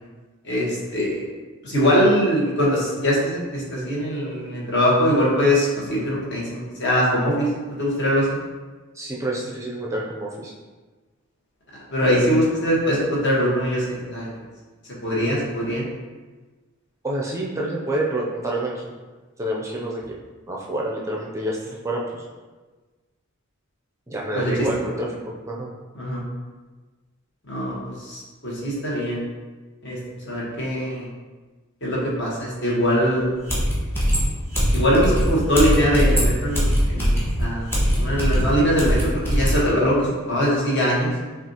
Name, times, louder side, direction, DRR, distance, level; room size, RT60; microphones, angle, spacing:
voice 1, 0.4-1.2 1.6-7.5 7.8-8.4 11.9-14.3 15.0-15.9 24.3-24.5 26.0-26.2 27.5-29.2 29.8-30.0 30.3-31.1 31.8-33.3 34.7-41.1, equal, 60° left, -5 dB, 1.2 m, -22 dB
voice 2, 8.9-10.5 17.0-18.9 19.4-20.2 20.5-22.2 24.1-25.7, right 1 dB, 15° right, -3 dB, 0.4 m, -28 dB
sound 1, 33.2-33.3 33.5-39.6, equal, 10° left, 1.2 m, -21 dB
5.7 x 2.4 x 2.8 m, 1.3 s
head